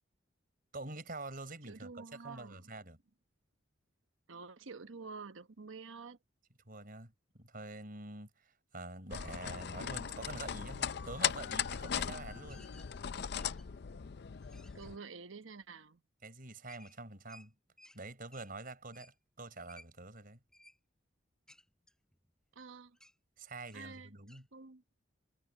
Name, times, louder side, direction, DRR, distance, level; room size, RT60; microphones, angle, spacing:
voice 1, 0.7-3.0 6.7-12.7 16.2-17.5 17.9-20.4 23.4-24.5, right 2 dB, 45° right, 5.4 m, -47 dB
voice 2, 1.7-2.6 4.3-6.2 14.5-16.0 22.5-23.0 23.7-24.1 24.5-24.8, right 4 dB, 85° right, 1.1 m, -49 dB
sound 1, 9.1-15.0, left 8 dB, 55° left, 0.5 m, -38 dB
sound 2, 12.5-12.9 13.3-13.8 14.3-14.9 16.7-18.0 18.3-18.5 18.9-19.1 19.7-19.9 20.5-20.8 21.5-22.6 22.9-23.2 23.6-23.9 24.3-24.4, left 1 dB, 5° left, 6.9 m, -60 dB
head